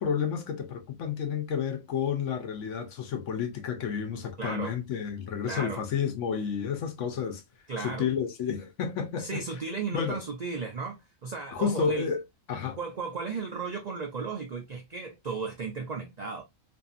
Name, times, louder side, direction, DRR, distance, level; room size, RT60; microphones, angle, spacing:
voice 1, 0.0-7.4 7.8-9.4 9.9-10.2 11.5-12.2 12.5-12.8, left 7 dB, 65° left, 1.0 m, -31 dB
voice 2, 4.4-4.7 5.4-5.8 7.7-8.1 9.2-12.1 12.8-16.4, right 4 dB, 65° right, 0.4 m, -35 dB
2.7 x 2.6 x 2.3 m
omnidirectional pair, 1.4 m